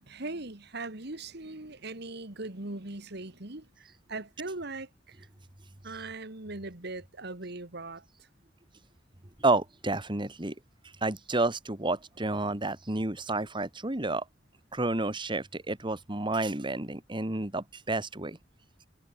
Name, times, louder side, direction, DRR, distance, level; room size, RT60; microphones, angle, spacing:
voice 1, 0.1-3.6 4.1-4.9 5.8-8.0, right 2 dB, 60° right, 2.4 m, -39 dB
voice 2, 9.4-10.5 11.0-14.2 14.7-18.4, right 2 dB, 25° right, 1.9 m, -30 dB
head